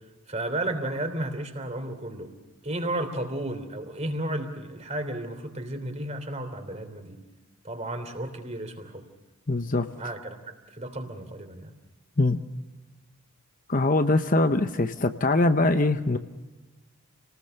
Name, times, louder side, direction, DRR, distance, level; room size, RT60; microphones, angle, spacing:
voice 1, 0.3-2.3 2.6-7.2 7.6-9.0 9.7-11.7, right 1 dB, 30° right, 7 dB, 3.1 m, -33 dB
voice 2, 9.5-9.9 12.2-12.4 13.7-16.2, left 2 dB, 35° left, 9 dB, 0.8 m, -22 dB
29.0 x 19.5 x 6.6 m, 1.2 s
head